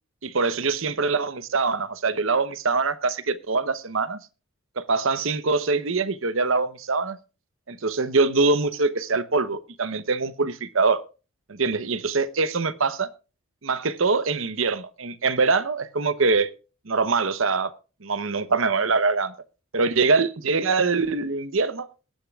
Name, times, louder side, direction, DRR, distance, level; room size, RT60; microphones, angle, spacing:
voice 1, 0.2-4.2 4.8-7.2 7.7-11.0 11.5-13.1 13.6-16.5 16.9-17.7 18.0-19.3 19.7-21.9, right 4 dB, 70° right, 0.9 m, -23 dB
21.5 x 10.5 x 2.4 m
head